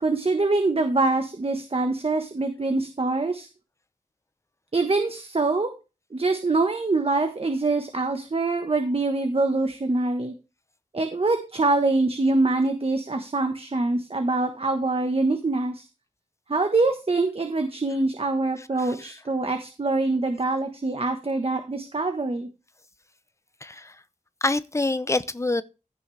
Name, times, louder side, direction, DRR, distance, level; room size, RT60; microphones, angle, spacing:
voice 1, 0.0-3.5 4.7-5.7 6.1-10.3 10.9-15.8 16.5-22.5, right 3 dB, 45° right, 1.3 m, -24 dB
voice 2, 18.6-19.1 23.6-24.0 24.4-25.6, left 2 dB, 20° left, 0.7 m, -27 dB
15.5 x 6.2 x 3.3 m
wide cardioid pair, 80°, 14 cm